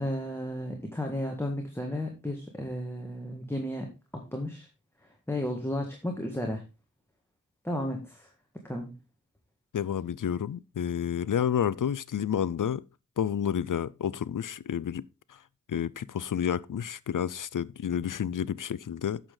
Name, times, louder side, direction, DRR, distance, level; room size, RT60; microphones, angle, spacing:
voice 1, 0.0-3.9 4.1-4.7 5.3-6.6 7.6-8.3 8.6-8.9, left 1 dB, 10° left, 1.7 m, -33 dB
voice 2, 9.7-12.8 13.2-15.0 15.3-15.4 15.7-19.2, left 8 dB, 85° left, 0.5 m, -30 dB
8.8 x 6.8 x 3.8 m
wide cardioid pair, 50°, 31 cm